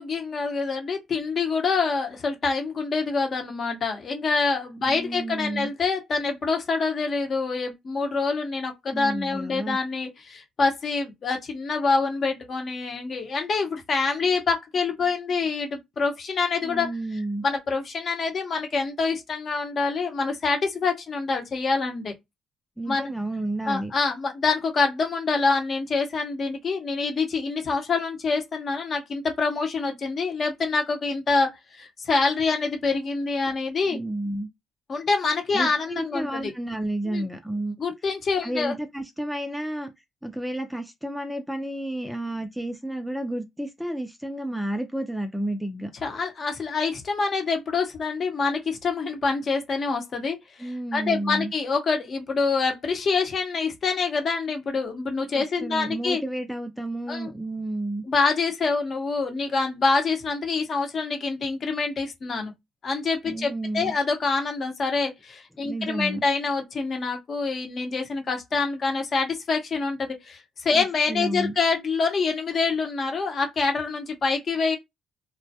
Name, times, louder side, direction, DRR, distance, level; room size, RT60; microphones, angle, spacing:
voice 1, 0.0-16.9 17.4-22.1 22.9-23.1 23.7-34.0 34.9-36.5 37.0-37.2 37.8-38.7 46.0-56.2 57.1-57.3 58.1-62.5 62.8-74.8, left 4 dB, 50° left, 0.8 m, -26 dB
voice 2, 4.8-5.7 8.9-9.8 16.6-17.4 22.8-23.9 33.9-34.5 35.5-37.8 38.4-39.9 40.2-45.9 50.6-51.5 55.3-58.0 63.2-63.9 65.6-66.2 70.7-71.5, right 1 dB, ahead, 0.4 m, -31 dB
2.2 x 2.1 x 2.7 m
cardioid pair, 85°, 0 cm